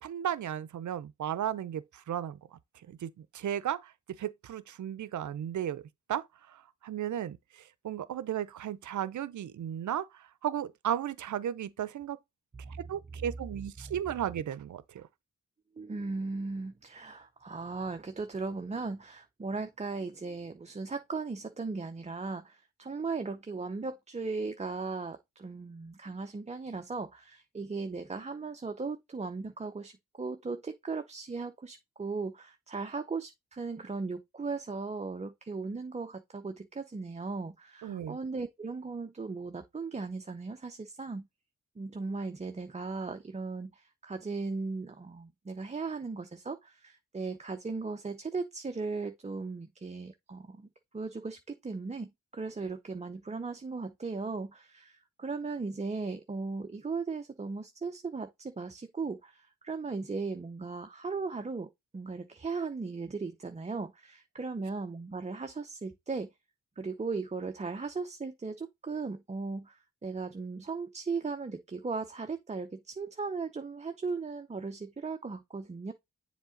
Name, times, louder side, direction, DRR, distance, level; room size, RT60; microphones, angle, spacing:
voice 1, 0.0-2.4 2.9-3.9 4.2-5.8 6.1-6.2 6.5-12.2 12.7-15.1 37.8-38.2, right 10 dB, 70° right, 0.6 m, -35 dB
voice 2, 15.8-41.3 41.8-50.7 50.9-66.3 66.8-75.9, right 4 dB, 20° right, 0.6 m, -37 dB
7.3 x 3.6 x 3.9 m
cardioid pair, 75°, 31 cm